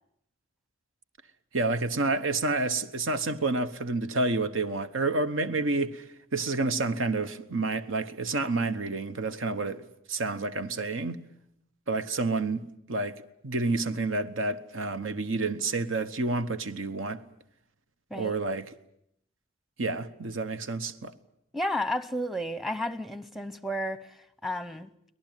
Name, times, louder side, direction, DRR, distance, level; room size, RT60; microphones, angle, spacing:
voice 1, 1.5-6.0 6.3-9.8 10.1-11.2 11.9-17.2 18.1-18.7 19.8-21.1, right 3 dB, 75° right, 1.2 m, -29 dB
voice 2, 21.5-24.0 24.4-24.9, left 1 dB, ahead, 0.9 m, -32 dB
24.0 x 18.5 x 9.2 m
head